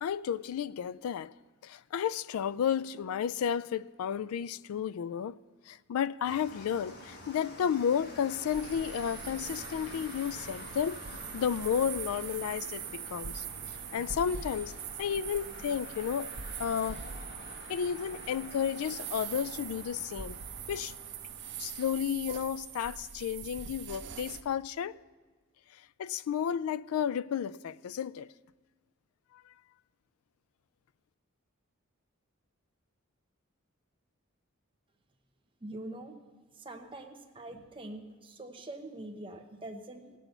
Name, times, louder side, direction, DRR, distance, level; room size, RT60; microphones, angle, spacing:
voice 1, 0.0-1.3 1.6-5.4 5.7-11.0 11.3-14.7 15.0-16.3 16.6-17.0 17.7-20.4 20.7-20.9 21.6-25.0 26.0-28.3 29.3-29.4, left 8 dB, 80° left, 0.3 m, -32 dB
sound 1, 6.2-22.0, left 1 dB, 50° left, 1.6 m, -48 dB
sound 2, 8.5-24.4, right 8 dB, 55° right, 0.7 m, -43 dB
voice 2, 35.6-36.2 36.5-40.1, right 1 dB, 25° right, 0.9 m, -44 dB
17.0 x 6.1 x 6.8 m
head